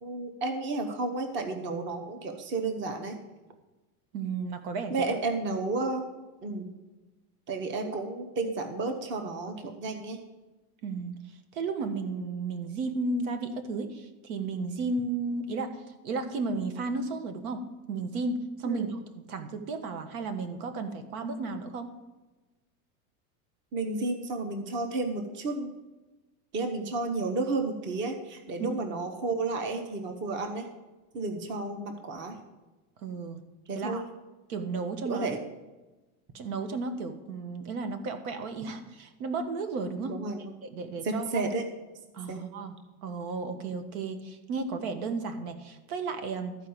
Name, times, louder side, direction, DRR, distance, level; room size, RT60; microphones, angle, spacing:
voice 1, 0.0-3.2 4.9-6.0 6.4-6.7 7.5-10.2 18.6-18.9 23.7-25.7 26.5-30.7 31.1-32.4 33.7-34.0 35.0-35.4 40.1-40.4 41.0-41.7 42.3-42.4, right 3 dB, 25° right, 5 dB, 1.0 m, -32 dB
voice 2, 4.1-5.1 10.8-11.1 11.5-15.7 16.0-21.9 28.6-28.7 33.0-33.4 33.7-34.0 34.5-35.3 36.3-40.2 40.6-41.5 42.1-42.8 43.0-46.6, right 3 dB, 70° right, 8 dB, 1.6 m, -33 dB
13.5 x 4.8 x 8.7 m, 1.2 s
supercardioid pair, 155°, 44 cm